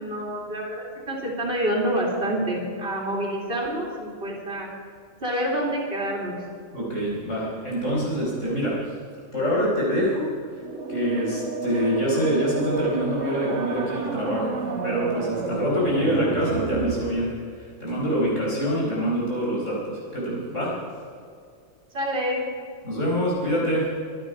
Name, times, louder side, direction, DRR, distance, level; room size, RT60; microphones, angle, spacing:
voice 1, 0.0-4.7 5.2-6.3 21.9-22.4, right 1 dB, 45° right, -3 dB, 3.1 m, -27 dB
voice 2, 6.7-9.0 9.3-10.3 10.5-10.6 10.9-20.8 22.8-23.9, equal, 70° left, -5 dB, 5.7 m, -25 dB
sound 1, 10.6-17.0, right 3 dB, 65° right, 1.6 m, -31 dB
24.5 x 9.7 x 5.2 m, 2.1 s
omnidirectional pair, 1.3 m